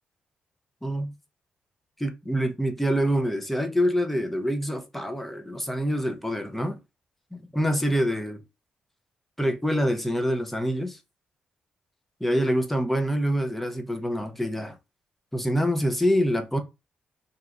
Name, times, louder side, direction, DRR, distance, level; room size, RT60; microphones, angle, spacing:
voice 1, 0.8-1.1 2.0-6.8 7.3-8.4 9.4-11.0 12.2-14.8 15.3-16.6, equal, 5° left, 0.6 m, -26 dB
3.3 x 2.8 x 2.4 m
cardioid pair, 105°, 3 cm